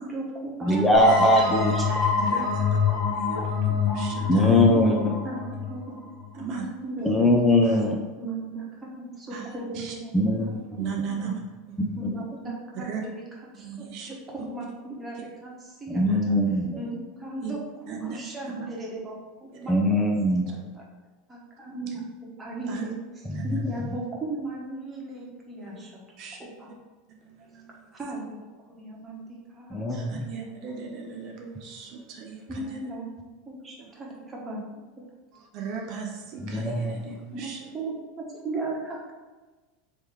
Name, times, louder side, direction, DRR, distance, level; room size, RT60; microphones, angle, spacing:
voice 1, 0.0-1.3 4.8-4.9 5.2-6.0 6.4-7.6 8.2-11.3 12.0-13.2 13.5-16.4 16.8-17.6 17.9-20.8 21.3-22.0 22.4-26.0 26.4-26.7 27.9-28.4 28.7-30.1 32.5-33.2 33.5-34.6 37.3-39.1, right 2 dB, 20° right, -3 dB, 1.1 m, -37 dB
voice 2, 0.6-2.1 4.3-5.1 7.0-8.0 10.1-10.6 11.3-11.4 12.0-12.1 15.9-16.8 19.7-20.6 23.3-23.4 29.7-30.2 36.5-37.1, left 1 dB, 10° left, 0 dB, 0.5 m, -22 dB
sound 1, 0.9-6.4, left 5 dB, 40° left, 1.1 m, -25 dB
voice 3, 2.2-2.8 3.1-4.6 6.3-6.7 7.0-7.1 7.6-7.8 9.3-9.5 9.7-9.9 10.8-11.4 11.7-11.8 12.7-13.0 13.6-14.1 16.1-16.2 17.4-17.5 17.9-18.2 18.4-18.7 19.5-19.7 20.5-20.7 22.7-22.8 23.3-23.8 25.6-25.8 26.2-26.4 27.2-27.9 29.9-32.8 33.8-33.9 35.3-37.7, right 6 dB, 55° right, 1 dB, 0.6 m, -38 dB
3.2 x 3.0 x 3.6 m, 1.3 s
hypercardioid pair, 105°, 0 cm